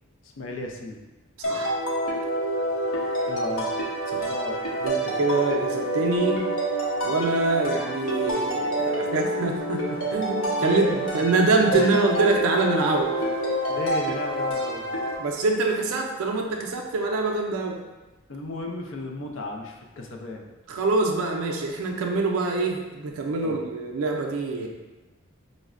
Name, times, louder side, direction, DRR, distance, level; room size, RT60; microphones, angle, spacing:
voice 1, 0.2-1.0 3.3-3.7 4.1-4.7 10.6-11.0 11.7-11.9 13.7-14.8 18.3-20.4 23.4-23.6, left 1 dB, 65° left, 2 dB, 0.4 m, -34 dB
sound 1, 1.4-15.2, right 1 dB, 90° left, 0.8 m, -27 dB
voice 2, 1.4-1.8 4.1-4.3 4.8-6.4 7.0-10.8 11.1-13.1 15.2-17.8 20.7-24.7, right 3 dB, 90° right, 1 dB, 0.4 m, -25 dB
5.1 x 2.1 x 2.4 m, 1.1 s
head